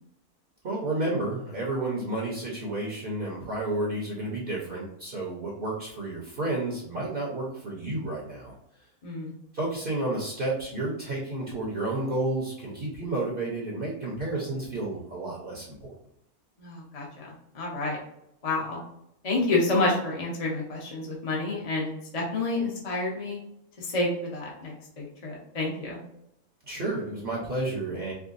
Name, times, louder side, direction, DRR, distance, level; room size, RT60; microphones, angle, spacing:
voice 1, 0.6-8.6 9.5-15.9 26.6-28.1, right 2 dB, 45° right, -5 dB, 0.9 m, -31 dB
voice 2, 16.6-18.0 18.4-18.8 19.2-23.4 23.8-26.0, left 2 dB, 30° left, -3 dB, 0.8 m, -29 dB
4.7 x 2.2 x 2.6 m, 0.77 s
omnidirectional pair, 1.6 m